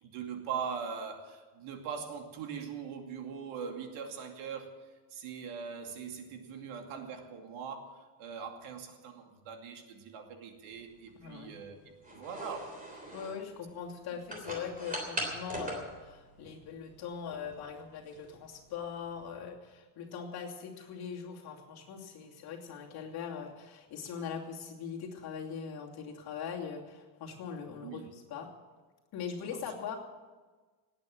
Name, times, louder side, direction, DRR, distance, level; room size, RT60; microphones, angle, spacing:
voice 1, 0.0-4.8 5.1-12.8 27.8-28.1, right 6 dB, 80° right, 4 dB, 2.6 m, -41 dB
sound 1, 10.7-19.4, right 1 dB, 15° right, 3.4 m, -43 dB
voice 2, 11.2-11.5 13.1-28.5 29.1-30.0, left 7 dB, 50° left, -1 dB, 2.8 m, -41 dB
19.0 x 9.0 x 7.8 m, 1.3 s
cardioid pair, 170°, 50 cm